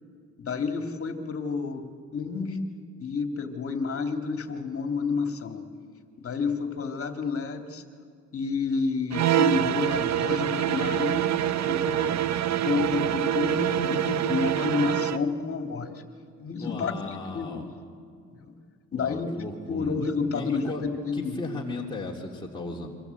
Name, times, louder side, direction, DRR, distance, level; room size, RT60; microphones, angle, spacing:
voice 1, 0.4-1.8 2.1-2.6 3.0-5.7 6.2-7.8 8.3-11.3 11.6-12.2 12.6-16.0 16.4-17.7 18.4-18.5 18.9-19.3 19.7-21.6, left 4 dB, 50° left, 5 dB, 2.6 m, -30 dB
sound 1, 9.1-15.3, right 11 dB, 65° right, 0.9 m, -25 dB
voice 2, 16.6-17.7 18.9-20.0 20.3-20.8 21.1-22.9, left 2 dB, 15° left, -2 dB, 3.1 m, -36 dB
29.0 x 24.0 x 8.3 m, 2.2 s
cardioid pair, 90°, 30 cm